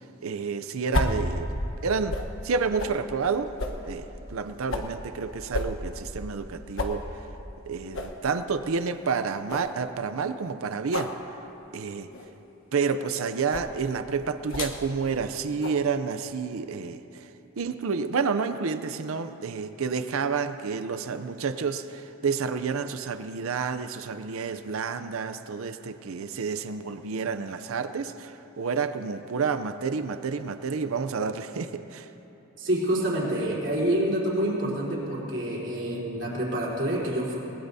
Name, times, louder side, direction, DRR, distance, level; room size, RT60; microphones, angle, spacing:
voice 1, 0.2-1.5 1.8-2.2 2.4-3.5 3.8-7.0 7.7-11.1 11.7-12.1 12.7-17.3 17.6-32.1, right 5 dB, 85° right, 10 dB, 0.5 m, -29 dB
sound 1, 0.9-2.3 2.8-3.0 3.6-4.9 5.5-6.5 6.8-7.0 7.4-7.5 7.9-8.2 8.6-8.7 9.1-9.2 9.5-9.7 10.9-11.2 12.1-12.3 13.5-13.7 14.5-14.8 15.6-15.8, left 1 dB, 75° left, 1.2 m, -31 dB
voice 2, 32.6-37.4, right 1 dB, 60° right, -5 dB, 3.7 m, -27 dB
21.0 x 19.5 x 2.7 m, 3.0 s
head